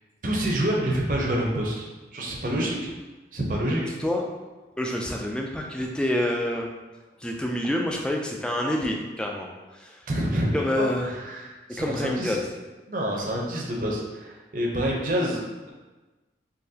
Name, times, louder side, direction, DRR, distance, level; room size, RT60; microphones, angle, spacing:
voice 1, 0.2-1.8 2.1-2.9 3.3-3.8 10.1-12.4 12.9-15.7, right 1 dB, 50° right, -1 dB, 0.7 m, -27 dB
voice 2, 3.8-4.2 4.8-6.7 7.2-9.5 9.7-10.0 10.5-11.1 11.8-12.4, left 1 dB, 5° left, 0 dB, 0.3 m, -27 dB
3.9 x 2.8 x 2.7 m, 1.2 s
head